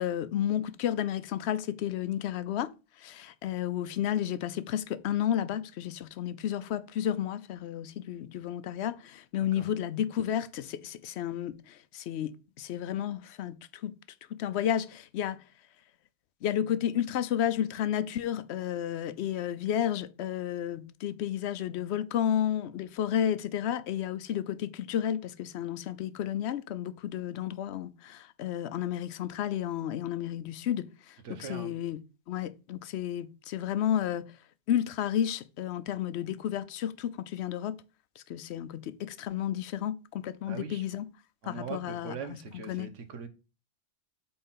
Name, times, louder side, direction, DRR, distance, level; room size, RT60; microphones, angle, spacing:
voice 1, 0.0-2.7 3.0-13.9 14.4-15.4 16.4-32.0 32.3-34.3 34.7-37.8 38.2-41.1 41.4-42.4 42.7-42.9, left 10 dB, 70° left, 0.8 m, -32 dB
voice 2, 31.2-31.7 40.5-40.8 41.4-43.3, right 5 dB, 80° right, 1.4 m, -41 dB
5.5 x 4.4 x 5.6 m
omnidirectional pair, 1.2 m